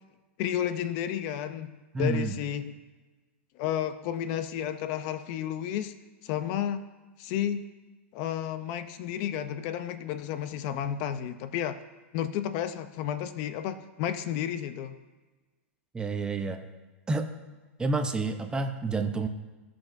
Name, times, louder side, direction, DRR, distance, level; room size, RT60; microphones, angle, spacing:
voice 1, 0.4-2.7 3.6-6.0 6.2-6.8 7.2-7.6 8.1-11.8 12.1-15.0, left 10 dB, 50° left, 11 dB, 0.6 m, -32 dB
voice 2, 1.9-2.3 15.9-16.6 17.1-17.3 17.8-19.3, right 3 dB, 10° right, 6 dB, 0.7 m, -29 dB
16.5 x 5.9 x 2.7 m, 1.2 s
hypercardioid pair, 125°, 7 cm